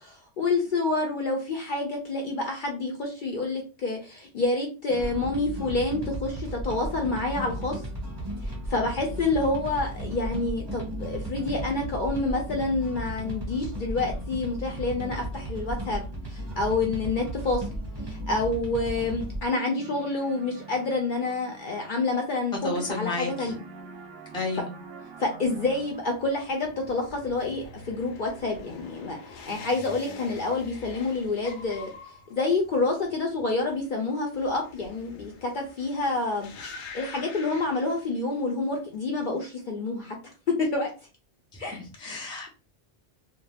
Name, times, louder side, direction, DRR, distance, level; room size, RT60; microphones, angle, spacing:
voice 1, 0.4-7.8 8.4-16.0 16.3-17.7 18.0-23.6 25.2-31.9 32.3-36.5 36.9-40.2 40.5-40.9 41.6-41.8, left 3 dB, 55° left, 2 dB, 0.6 m, -28 dB
sound 1, 4.9-19.4, right 1 dB, 25° right, 0.9 m, -35 dB
sound 2, 19.7-22.5 22.7-26.4, right 5 dB, 65° right, 0.8 m, -46 dB
voice 2, 22.6-23.5 24.3-24.7 41.5-42.5, left 3 dB, 5° left, 1 dB, 0.4 m, -32 dB
sound 3, 25.4-38.5 38.8-39.4, left 4 dB, 80° left, 0.9 m, -46 dB
2.5 x 2.1 x 3.2 m, 0.33 s
omnidirectional pair, 1.2 m